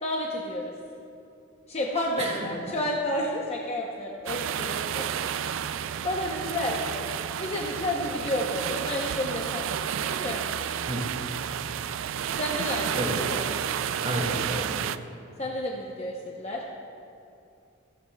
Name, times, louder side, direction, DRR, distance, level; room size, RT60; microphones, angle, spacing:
voice 1, 0.0-0.7 1.7-5.1 6.0-9.6 10.1-10.4 12.3-13.5 15.4-16.6, left 1 dB, 30° left, -2 dB, 0.8 m, -31 dB
sound 1, 4.3-15.0, right 8 dB, 75° right, 0.4 m, -31 dB
voice 2, 10.9-11.2 12.9-13.3 14.0-14.9, right 1 dB, 35° right, -1 dB, 2.0 m, -31 dB
16.0 x 15.5 x 2.3 m, 2.6 s
head